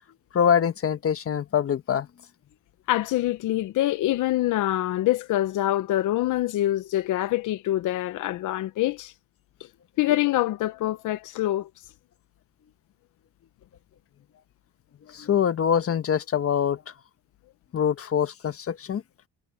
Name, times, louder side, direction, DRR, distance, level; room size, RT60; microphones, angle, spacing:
voice 1, 0.3-2.1 15.0-16.9 17.7-19.0, left 8 dB, 50° left, 1.3 m, -24 dB
voice 2, 2.9-9.1 10.0-11.7, left 15 dB, 85° left, 0.8 m, -25 dB
cardioid pair, 90°, 30 cm